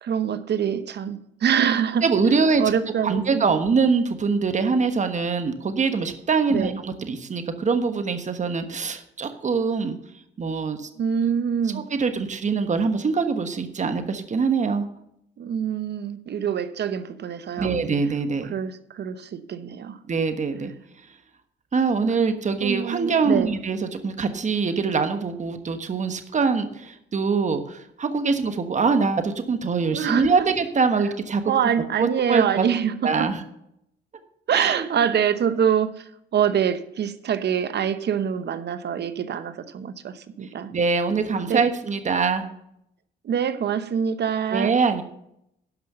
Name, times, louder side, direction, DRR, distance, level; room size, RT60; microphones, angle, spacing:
voice 1, 0.0-2.0 2.6-3.5 6.5-6.8 11.0-11.8 15.4-17.7 18.5-20.0 22.6-23.5 29.9-30.3 31.5-33.3 34.5-36.0 36.3-40.7 41.5-41.6 43.2-44.7, right 8 dB, 60° right, 12 dB, 0.9 m, -25 dB
voice 2, 2.0-2.6 3.0-10.0 10.4-10.9 11.7-14.8 17.6-18.5 20.1-20.7 21.7-31.4 32.0-32.7 33.0-33.4 34.5-34.9 40.7-42.4 44.5-45.0, right 5 dB, 35° right, 8 dB, 1.3 m, -23 dB
12.0 x 5.6 x 6.6 m, 0.76 s
cardioid pair, 90°, 20 cm